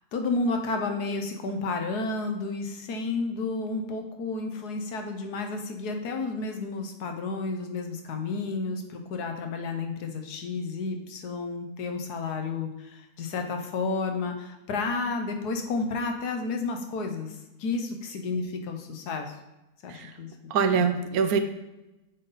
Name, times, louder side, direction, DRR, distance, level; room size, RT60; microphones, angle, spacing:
voice 1, 0.1-19.3 19.8-20.8, left 3 dB, 80° left, 4 dB, 1.4 m, -31 dB
voice 2, 20.5-21.4, right 6 dB, 70° right, 8 dB, 1.1 m, -24 dB
8.0 x 3.8 x 4.1 m, 0.98 s
omnidirectional pair, 1.7 m